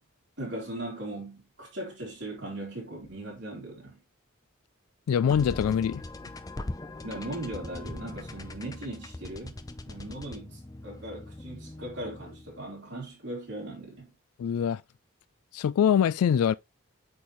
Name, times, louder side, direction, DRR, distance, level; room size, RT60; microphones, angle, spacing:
voice 1, 0.4-4.0 7.0-9.6 9.9-14.1, right 1 dB, 55° right, 3.8 m, -39 dB
voice 2, 5.1-6.0 14.4-14.8 15.5-16.5, left 8 dB, 85° left, 0.3 m, -24 dB
sound 1, 5.3-12.6, left 2 dB, 15° left, 0.5 m, -41 dB
8.5 x 4.3 x 3.1 m
head